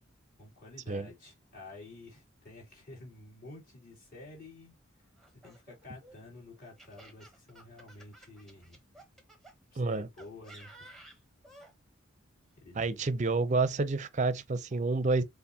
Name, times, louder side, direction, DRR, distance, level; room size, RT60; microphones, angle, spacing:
voice 1, 0.4-8.8 9.7-10.7 12.6-13.0, left 2 dB, 40° left, 2.7 m, -51 dB
Laughter, 5.2-9.5 10.2-11.7, right 1 dB, ahead, 0.8 m, -54 dB
voice 2, 9.8-10.1 12.8-15.2, right 3 dB, 35° right, 0.5 m, -29 dB
6.8 x 2.5 x 2.7 m
head